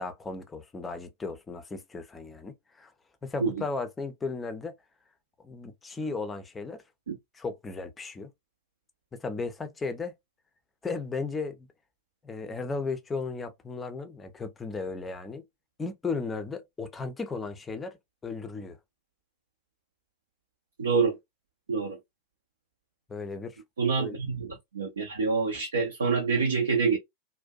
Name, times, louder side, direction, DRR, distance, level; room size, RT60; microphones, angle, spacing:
voice 1, 0.0-2.9 3.2-4.7 5.4-6.8 7.3-8.3 9.1-10.1 10.8-11.7 12.2-15.4 15.8-18.0 18.2-18.8 23.1-23.6 24.0-24.2, left 4 dB, 15° left, 0.5 m, -35 dB
voice 2, 20.8-21.2 21.7-22.0 23.8-27.0, right 4 dB, 70° right, 0.5 m, -26 dB
2.6 x 2.1 x 2.2 m
figure-of-eight pair, 90°, 0 cm